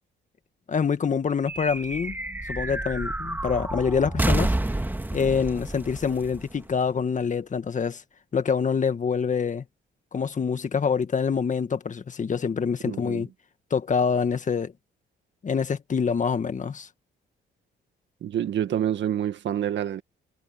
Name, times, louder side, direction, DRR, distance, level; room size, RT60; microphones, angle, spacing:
voice 1, 0.7-2.2 2.5-4.5 5.1-8.0 8.3-9.6 10.1-13.3 13.7-14.7 15.4-16.9, left 6 dB, 40° left, 1.7 m, -26 dB
sound 1, 1.5-7.2, right 1 dB, 10° right, 1.8 m, -29 dB
voice 2, 12.9-13.2 18.2-20.0, right 10 dB, 70° right, 1.8 m, -27 dB
cardioid pair, 90°, 20 cm